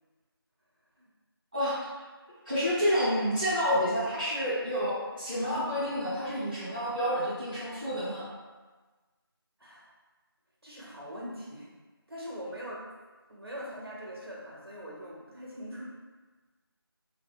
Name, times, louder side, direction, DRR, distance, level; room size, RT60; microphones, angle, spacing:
voice 1, 1.5-2.0 2.5-8.3, equal, 20° right, -13 dB, 0.9 m, -29 dB
voice 2, 10.6-11.7 12.1-12.9 13.3-15.9, equal, 75° right, -5 dB, 1.0 m, -42 dB
3.1 x 2.7 x 2.2 m, 1.3 s
figure-of-eight pair, 175°, 13 cm